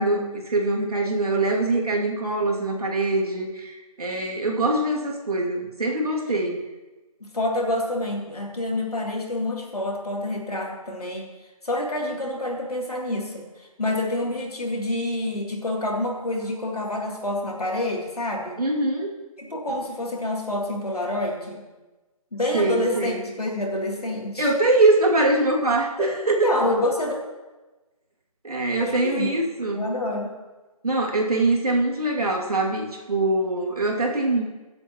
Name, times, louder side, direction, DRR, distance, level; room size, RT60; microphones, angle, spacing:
voice 1, 0.0-6.7 18.6-19.1 22.5-23.2 24.4-26.5 28.4-29.9 30.8-34.5, right 2 dB, 80° right, -1 dB, 2.6 m, -23 dB
voice 2, 7.2-11.3 11.6-18.6 19.4-21.6 22.3-24.5 26.0-27.2 28.8-29.3 29.7-30.4, left 1 dB, 90° left, -1 dB, 3.1 m, -27 dB
21.5 x 7.9 x 3.0 m, 1.2 s
figure-of-eight pair, 155°, 19 cm